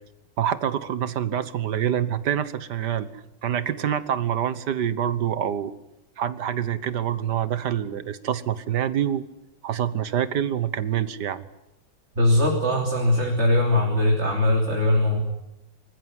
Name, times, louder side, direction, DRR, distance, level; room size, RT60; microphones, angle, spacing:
voice 1, 0.4-5.7 6.2-9.2 9.6-11.4, right 9 dB, 60° right, 14 dB, 1.6 m, -26 dB
voice 2, 12.2-15.2, left 1 dB, 30° right, -1 dB, 3.5 m, -21 dB
26.0 x 15.0 x 9.5 m, 0.91 s
omnidirectional pair, 2.2 m